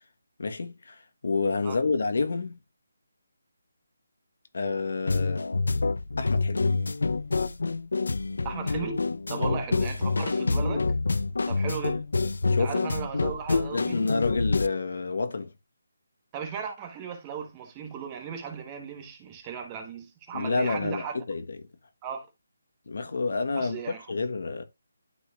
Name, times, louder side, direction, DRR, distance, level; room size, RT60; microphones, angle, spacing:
voice 1, 0.4-2.6 4.5-5.4 6.2-6.7 9.4-9.5 12.5-12.8 13.5-15.5 20.3-21.6 22.9-23.8 24.1-24.6, left 4 dB, 60° left, 1.3 m, -29 dB
sound 1, 5.1-14.7, left 3 dB, 80° left, 0.6 m, -27 dB
voice 2, 8.4-10.9 11.5-12.1 12.5-14.0 16.3-21.2 22.0-22.3 23.5-24.1, right 7 dB, 15° right, 1.2 m, -36 dB
12.0 x 4.1 x 2.5 m
hypercardioid pair, 170°, 0 cm